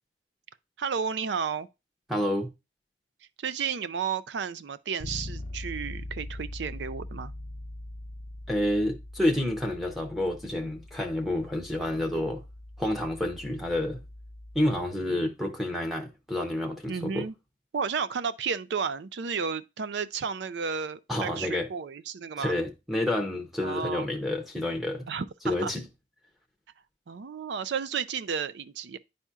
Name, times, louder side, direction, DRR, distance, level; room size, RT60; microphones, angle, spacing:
voice 1, 0.8-1.7 3.4-7.3 16.9-17.3 17.7-22.5 23.6-24.1 25.1-25.7 27.1-29.0, right 6 dB, 70° right, 0.4 m, -32 dB
voice 2, 2.1-2.5 8.5-12.4 12.8-14.0 14.5-17.3 21.1-21.7 22.4-25.1 25.4-25.8, left 1 dB, ahead, 0.7 m, -29 dB
Bass guitar, 5.0-14.8, left 1 dB, 40° left, 0.5 m, -42 dB
10.0 x 4.2 x 2.4 m
head